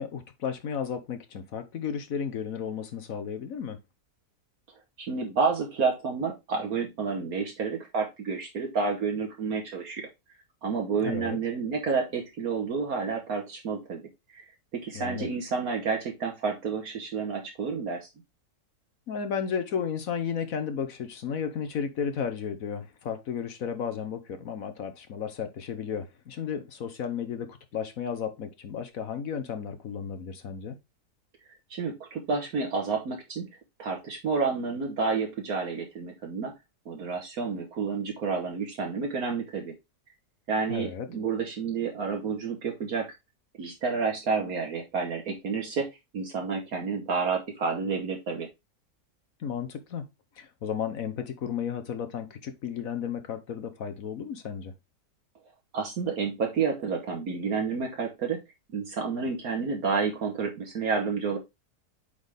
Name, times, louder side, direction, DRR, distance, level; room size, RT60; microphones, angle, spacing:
voice 1, 0.0-3.8 11.0-11.4 14.9-15.3 19.1-30.8 40.7-41.1 49.4-50.0 50.4-54.7, left 7 dB, 65° left, 1.3 m, -33 dB
voice 2, 5.0-10.1 10.6-14.0 14.3-18.1 31.7-33.5 33.8-36.5 36.8-39.7 40.5-43.1 43.6-45.9 46.1-48.5 55.7-58.4 58.7-61.4, right 5 dB, 70° right, 1.7 m, -30 dB
8.5 x 4.1 x 3.4 m
omnidirectional pair, 1.6 m